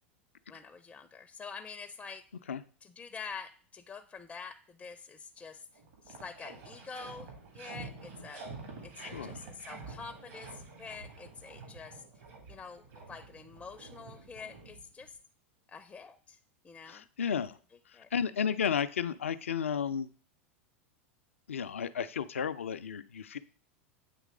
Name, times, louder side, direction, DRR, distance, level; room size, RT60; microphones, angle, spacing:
voice 1, 0.5-2.2 2.8-5.7 6.0-8.4 8.8-12.0 12.5-15.2 15.7-16.4 16.6-17.1 17.9-18.1, left 5 dB, 20° left, 8 dB, 0.4 m, -46 dB
sound 1, 5.4-5.5 5.7-15.2, right 3 dB, 70° right, 2.0 m, -48 dB
voice 2, 9.0-9.5 16.9-17.6 18.1-20.1 21.5-23.4, left 7 dB, 85° left, 12 dB, 0.4 m, -33 dB
8.3 x 3.2 x 3.7 m, 0.42 s
hypercardioid pair, 90°, 7 cm